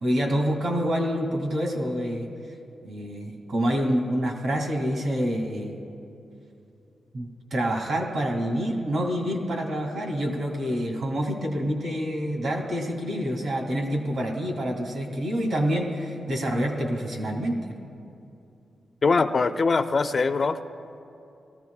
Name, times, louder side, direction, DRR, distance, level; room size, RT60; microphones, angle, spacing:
voice 1, 0.0-2.3 2.8-5.8 7.1-17.6, equal, 70° right, 2 dB, 2.2 m, -27 dB
voice 2, 19.0-20.6, left 4 dB, 35° left, 9 dB, 0.4 m, -22 dB
19.5 x 15.0 x 2.3 m, 2.7 s
wide cardioid pair, 135°, 0 cm